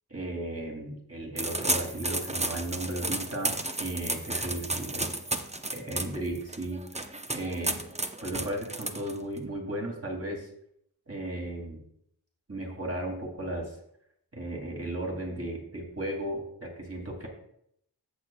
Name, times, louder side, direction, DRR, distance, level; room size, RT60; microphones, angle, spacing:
voice 1, 0.1-5.1 5.7-6.8 7.3-7.8 8.2-10.5 11.1-11.8 12.5-13.8 14.3-17.3, right 1 dB, 35° right, 0 dB, 2.6 m, -35 dB
sound 1, 1.4-9.4, right 2 dB, 15° right, 0.7 m, -32 dB
14.5 x 7.0 x 2.3 m, 0.72 s
wide cardioid pair, 45°, 41 cm